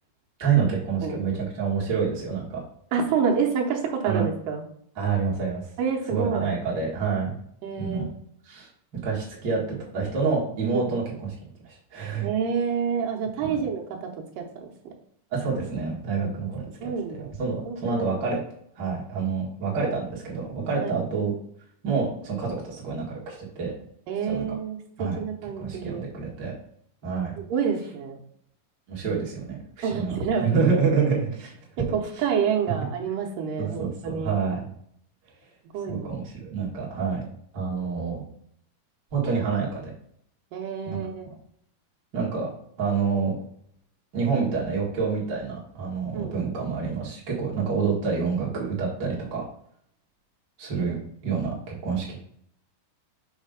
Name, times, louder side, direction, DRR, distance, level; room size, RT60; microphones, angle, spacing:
voice 1, 0.4-2.6 4.0-4.3 5.0-5.7 6.1-7.3 7.8-8.1 8.5-8.7 9.0-9.6 9.9-11.3 11.6-12.3 13.4-13.6 15.3-18.4 18.8-21.3 21.8-23.7 24.3-24.6 25.0-25.2 25.6-26.5 27.0-27.4 28.9-30.2 30.4-31.5 33.6-34.6 35.9-37.2 37.5-38.3 39.1-39.9 40.9-41.0 42.1-42.5 42.8-43.3 44.1-49.4 50.6-51.0 51.2-52.2, right 5 dB, 40° right, -5 dB, 2.0 m, -27 dB
voice 2, 2.9-4.6 5.8-6.5 7.6-8.1 10.7-10.9 12.2-14.1 14.4-14.7 16.8-17.3 17.7-18.3 20.8-21.0 24.1-26.0 27.5-28.2 29.8-30.5 31.9-34.3 35.7-36.1 40.5-41.3 46.1-46.5, right 6 dB, 85° right, 1 dB, 2.5 m, -28 dB
6.5 x 3.2 x 5.1 m, 0.67 s
omnidirectional pair, 3.9 m